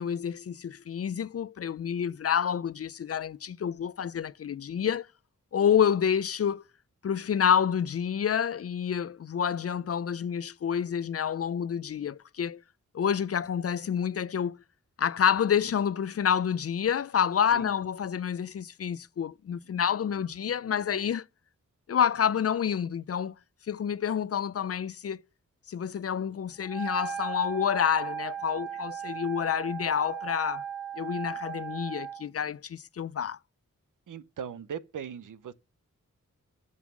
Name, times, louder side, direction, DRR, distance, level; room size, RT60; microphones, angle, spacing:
voice 1, 0.0-5.1 5.5-6.6 7.0-12.6 12.9-14.6 15.0-21.2 21.9-23.3 23.7-25.2 25.7-30.6 31.0-33.4, left 8 dB, 50° left, 0.5 m, -28 dB
Wind instrument woodwind instrument, 26.6-32.2, right 7 dB, 5° right, 1.4 m, -37 dB
voice 2, 34.1-35.5, right 8 dB, 75° right, 0.7 m, -39 dB
8.2 x 5.5 x 6.0 m
cardioid pair, 50°, 31 cm